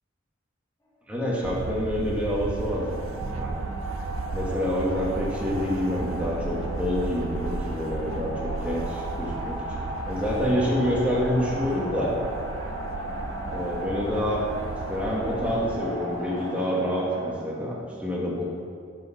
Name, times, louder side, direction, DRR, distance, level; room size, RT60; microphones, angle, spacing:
voice 1, 1.1-3.5 4.3-12.2 13.5-14.4 14.9-18.4, equal, 5° right, -5 dB, 1.5 m, -27 dB
sound 1, 1.4-15.8, right 4 dB, 85° right, 0.4 m, -35 dB
sound 2, 2.3-17.3, right 1 dB, 15° left, 1.3 m, -36 dB
11.5 x 4.8 x 5.9 m, 2.2 s
head